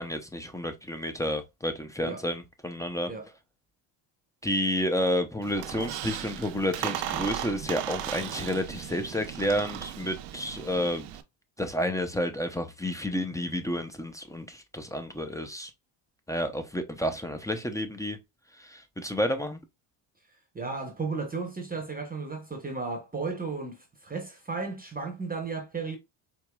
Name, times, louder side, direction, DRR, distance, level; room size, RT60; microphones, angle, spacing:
voice 1, 0.0-3.1 4.4-11.1 11.6-15.7 16.3-18.2 18.6-19.6, equal, 5° left, 0.6 m, -30 dB
Squeak, 5.4-11.2, right 11 dB, 60° right, 0.7 m, -36 dB
voice 2, 20.5-26.0, right 4 dB, 20° right, 0.9 m, -34 dB
4.6 x 2.9 x 2.2 m
cardioid pair, 95°, 48 cm